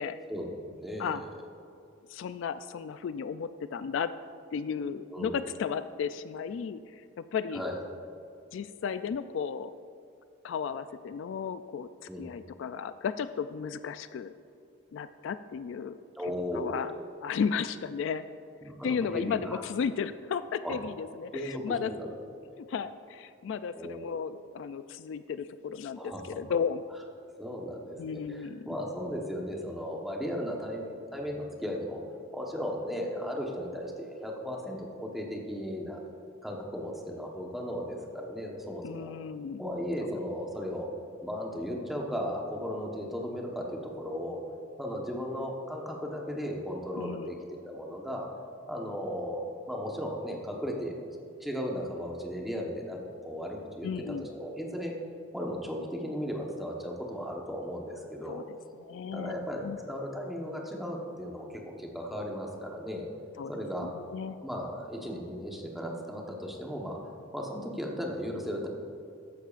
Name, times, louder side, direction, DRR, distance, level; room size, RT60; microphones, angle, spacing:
voice 1, 0.3-1.3 5.1-5.4 7.5-7.8 12.1-12.3 16.1-16.9 18.6-19.6 20.6-20.8 21.3-22.1 22.4-22.6 23.7-24.2 26.0-26.2 27.4-32.0 32.3-36.0 36.4-39.1 39.6-40.9 41.2-44.4 44.8-48.3 48.7-50.9 51.4-54.9 55.3-58.4 59.1-63.1 63.5-63.9 64.4-67.0 67.3-68.7, equal, ahead, -1 dB, 1.1 m, -36 dB
voice 2, 2.1-4.1 4.5-7.6 8.5-9.7 10.4-14.3 14.9-16.0 16.5-16.9 17.2-18.3 18.8-21.9 22.6-26.8 28.0-28.6 38.8-39.7 47.0-47.3 53.8-54.3 58.3-58.4 58.8-59.3 59.6-59.8 63.4-63.5 63.8-64.4, left 6 dB, 65° left, 12 dB, 0.3 m, -34 dB
14.0 x 10.0 x 2.5 m, 2.5 s
head